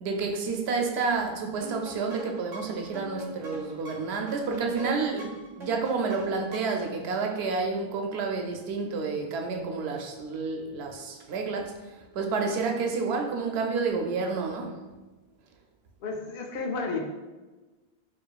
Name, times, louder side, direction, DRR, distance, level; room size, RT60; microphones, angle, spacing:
voice 1, 0.0-11.8 12.1-14.8, right 4 dB, 90° right, 3 dB, 0.8 m, -30 dB
sound 1, 1.6-6.9, right 1 dB, 45° right, 0.9 m, -42 dB
voice 2, 16.0-17.0, left 4 dB, 65° left, 0 dB, 0.8 m, -32 dB
4.6 x 2.6 x 2.3 m, 1.2 s
omnidirectional pair, 1.0 m